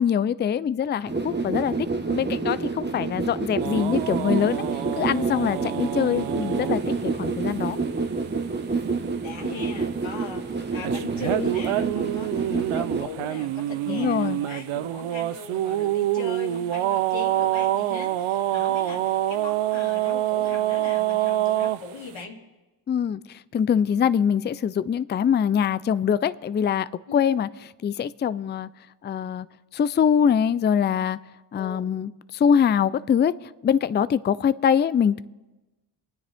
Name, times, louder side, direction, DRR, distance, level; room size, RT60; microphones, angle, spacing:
voice 1, 0.0-4.6 5.0-7.8 13.9-14.4 22.9-27.5 27.8-28.7 29.0-29.5 29.7-31.2 31.5-33.3 33.6-35.2, left 8 dB, 25° left, 17 dB, 0.3 m, -23 dB
sound 1, 1.1-13.0, right 4 dB, 20° right, 1.2 m, -28 dB
sound 2, 3.6-6.8 10.8-21.8, right 13 dB, 80° right, 0.6 m, -26 dB
voice 2, 9.2-22.4 27.1-27.2 31.5-31.9, left 4 dB, 65° left, 1 dB, 2.3 m, -38 dB
26.0 x 9.8 x 3.5 m, 1.1 s
cardioid pair, 55°, 49 cm